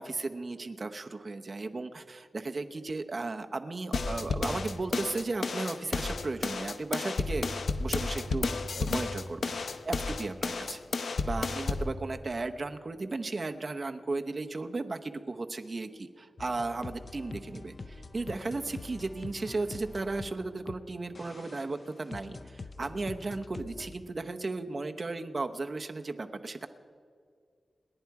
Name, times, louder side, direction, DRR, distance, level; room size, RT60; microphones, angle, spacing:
voice 1, 0.0-7.5 7.8-8.5 8.8-10.8 11.2-26.7, right 3 dB, 40° right, 6 dB, 0.8 m, -35 dB
sound 1, 3.9-11.9, left 4 dB, 75° left, 0.8 m, -32 dB
sound 2, 16.4-20.8 21.1-24.0, left 3 dB, 40° left, 0.6 m, -45 dB
28.0 x 10.5 x 4.8 m, 2.2 s
wide cardioid pair, 150°, 0 cm